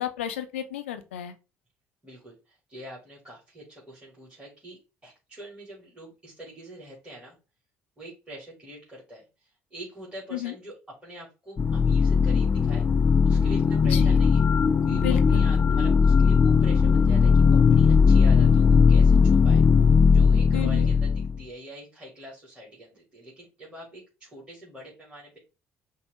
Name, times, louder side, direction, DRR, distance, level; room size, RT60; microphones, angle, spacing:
voice 1, 0.0-1.3 10.3-10.5 13.8-14.2 14.9-15.4 20.5-20.9, left 11 dB, 85° left, 9 dB, 0.5 m, -32 dB
voice 2, 2.0-7.4 8.0-9.2 9.7-12.9 13.2-14.4 14.8-19.6 20.1-25.4, equal, 15° right, -6 dB, 2.4 m, -45 dB
sound 1, 11.6-21.4, left 5 dB, 30° left, 0.3 m, -19 dB
5.5 x 2.1 x 3.4 m, 0.29 s
hypercardioid pair, 60°, 6 cm